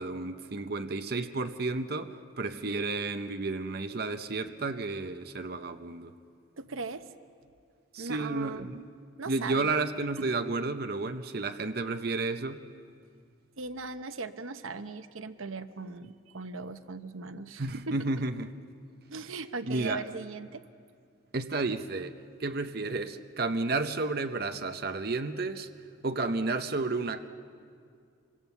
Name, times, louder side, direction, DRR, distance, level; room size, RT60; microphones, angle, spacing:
voice 1, 0.0-6.1 7.9-8.8 9.3-12.6 17.6-18.5 19.7-20.0 21.3-22.1 22.4-25.7 26.0-27.3, right 3 dB, 50° right, 7 dB, 0.7 m, -32 dB
voice 2, 6.6-7.1 8.0-8.7 9.2-9.7 10.2-10.3 13.6-18.0 19.1-20.6, right 4 dB, 85° right, 10 dB, 0.9 m, -39 dB
26.5 x 24.5 x 7.0 m, 2.3 s
head